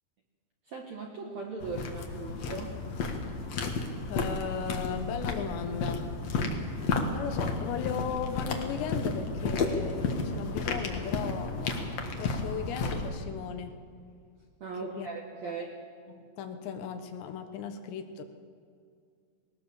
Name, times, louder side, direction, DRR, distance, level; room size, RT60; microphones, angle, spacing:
voice 1, 0.7-2.8 14.6-15.7, right 4 dB, 60° right, 1 dB, 1.8 m, -38 dB
sound 1, 1.6-13.1, left 3 dB, 55° left, 1.8 m, -32 dB
voice 2, 4.1-6.1 7.1-13.8 14.8-15.1 15.4-15.5 16.1-18.2, left 7 dB, 75° left, 7 dB, 3.3 m, -37 dB
20.0 x 19.0 x 7.2 m, 2.3 s
omnidirectional pair, 5.2 m